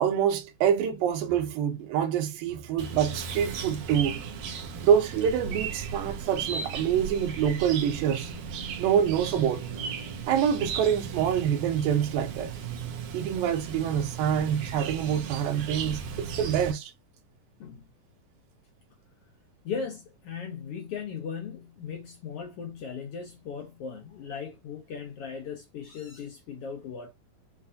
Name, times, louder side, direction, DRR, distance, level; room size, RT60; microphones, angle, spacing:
voice 1, 0.0-4.2 4.8-8.3 8.8-9.7 10.3-12.5 13.1-16.9, right 9 dB, 90° right, 2.7 m, -26 dB
Chirp tweet, 2.8-16.7, right 6 dB, 70° right, 2.0 m, -36 dB
voice 2, 19.6-27.1, left 6 dB, 75° left, 1.4 m, -38 dB
7.3 x 2.5 x 2.6 m
omnidirectional pair, 4.0 m